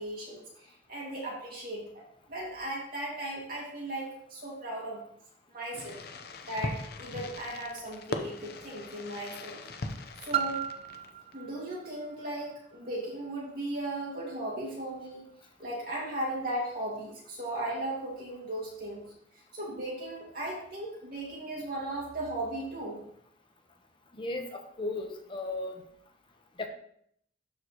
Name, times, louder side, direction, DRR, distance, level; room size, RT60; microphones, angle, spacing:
voice 1, 0.0-1.9 2.3-5.0 5.5-6.0 6.5-9.6 10.2-10.6 11.3-15.2 15.6-19.1 19.5-23.0, right 1 dB, 55° right, -5 dB, 2.2 m, -37 dB
Fireworks, 5.7-11.3, left 2 dB, 55° left, 0.7 m, -40 dB
Piano, 10.3-15.8 16.5-16.6, right 10 dB, 30° right, 0.3 m, -38 dB
voice 2, 24.2-25.8 26.6-26.7, left 2 dB, 30° left, 4 dB, 1.0 m, -35 dB
12.5 x 4.8 x 3.0 m, 0.68 s
head